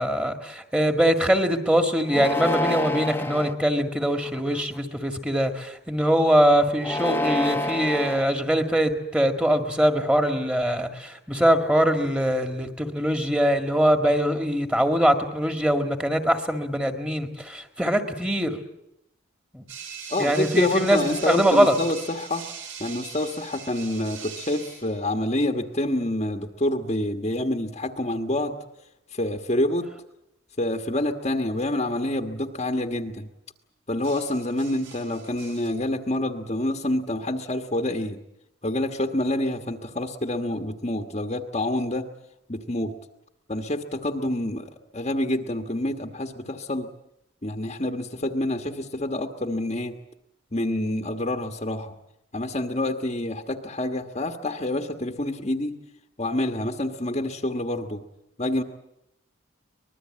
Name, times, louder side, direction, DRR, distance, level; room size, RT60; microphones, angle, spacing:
voice 1, 0.0-18.6 19.5-19.7 20.2-21.7, equal, 5° right, 6 dB, 1.9 m, -22 dB
sound 1, 2.1-3.5 4.2-4.8 6.7-8.2, left 1 dB, 10° left, 1.0 m, -27 dB
sound 2, 19.7-25.0 28.5-28.8 34.0-35.7, right 7 dB, 75° right, 6.2 m, -41 dB
voice 2, 20.1-22.4 22.8-28.6 29.1-29.9 30.6-33.3 33.9-38.2 38.6-42.1 42.5-42.9 43.5-46.9 47.4-49.9 50.5-51.9 52.3-55.8 56.2-58.0 58.4-58.6, left 1 dB, 35° left, 5 dB, 1.3 m, -27 dB
24.5 x 20.5 x 8.8 m, 0.84 s
head